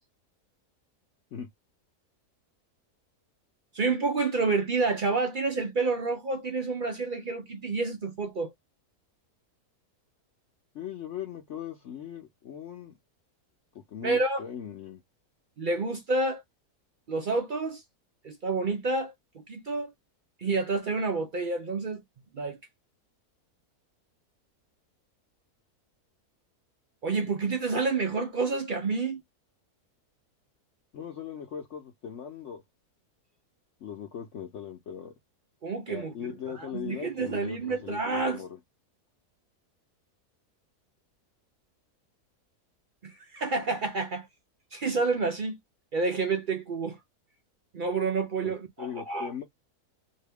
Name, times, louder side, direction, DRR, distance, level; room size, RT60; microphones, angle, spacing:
voice 1, 3.7-8.5 14.0-14.4 15.6-16.4 17.1-17.8 18.2-19.9 20.4-22.0 22.3-22.6 27.0-29.2 35.6-38.4 43.0-44.3 44.7-45.6 45.9-47.0 47.7-49.3, right 3 dB, 70° right, 0.4 m, -29 dB
voice 2, 10.7-13.0 13.7-15.0 30.9-32.6 33.8-35.1 35.9-38.5 48.4-48.5 48.8-49.4, left 8 dB, 55° left, 1.0 m, -39 dB
2.8 x 2.8 x 3.4 m
omnidirectional pair, 1.7 m